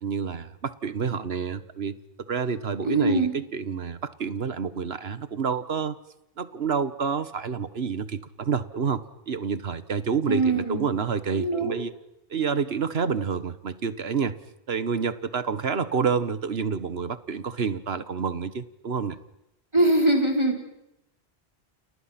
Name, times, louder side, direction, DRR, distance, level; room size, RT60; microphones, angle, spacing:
voice 1, 0.0-2.0 2.3-6.0 6.4-11.9 12.3-14.3 14.7-19.2, right 6 dB, 70° right, 13 dB, 1.6 m, -28 dB
voice 2, 2.8-3.3 10.3-10.9 11.3-11.8 19.7-20.7, right 2 dB, 25° right, 1 dB, 5.1 m, -23 dB
30.0 x 29.5 x 5.9 m, 0.85 s
omnidirectional pair, 1.1 m